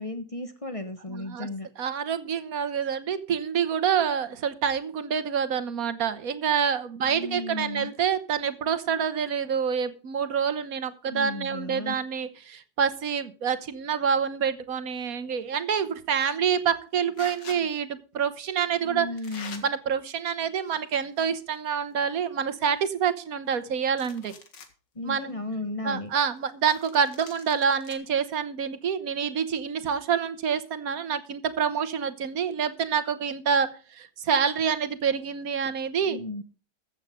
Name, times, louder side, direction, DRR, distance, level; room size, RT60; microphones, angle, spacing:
voice 1, 0.0-1.7 7.0-7.9 11.1-12.0 18.8-19.6 24.9-26.1 36.1-36.4, left 2 dB, 25° left, 8 dB, 0.9 m, -34 dB
voice 2, 1.1-1.5 1.8-19.1 19.6-24.3 25.1-25.3 25.8-36.2, right 7 dB, 55° right, 13 dB, 1.4 m, -27 dB
sound 1, 16.1-16.4 17.1-17.6 18.5-18.7 19.2-19.6 20.5-21.2 21.5-21.6 22.1-22.2 22.5-23.6 23.9-24.7 25.2-25.3 26.7-27.9, left 5 dB, 75° left, 2.3 m, -45 dB
14.5 x 8.0 x 5.0 m, 0.37 s
omnidirectional pair, 1.9 m